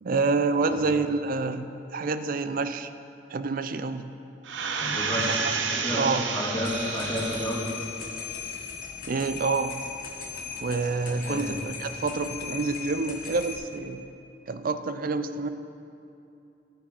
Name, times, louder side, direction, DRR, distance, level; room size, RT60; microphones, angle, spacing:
voice 1, 0.0-2.9 3.3-4.1 5.2-5.3 6.0-6.2 9.1-9.9 10.6-14.1 14.5-15.5, right 4 dB, 50° right, 11 dB, 0.4 m, -28 dB
sound 1, 4.5-7.9 8.3-8.4, right 5 dB, 85° right, 0.8 m, -30 dB
voice 2, 4.7-7.7 11.1-11.5, equal, 10° left, -9 dB, 2.0 m, -31 dB
sound 2, 6.6-13.6, left 6 dB, 50° left, 1.4 m, -38 dB
12.5 x 7.6 x 4.5 m, 2.7 s
head